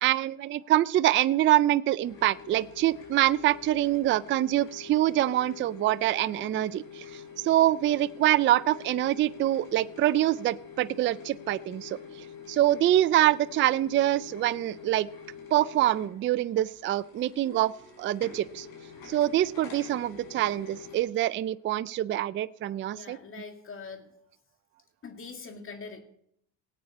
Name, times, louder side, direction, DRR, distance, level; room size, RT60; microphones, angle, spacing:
voice 1, 0.0-7.0 7.4-12.0 12.5-15.1 15.5-17.7 18.0-18.7 19.1-23.2, right 14 dB, 30° right, 17 dB, 0.4 m, -25 dB
sound 1, 2.0-21.0, left 6 dB, 60° left, 5.9 m, -46 dB
voice 2, 22.9-24.1 25.0-26.0, left 4 dB, 30° left, 5 dB, 2.3 m, -43 dB
19.0 x 8.6 x 4.2 m, 0.70 s
cardioid pair, 110°, 40 cm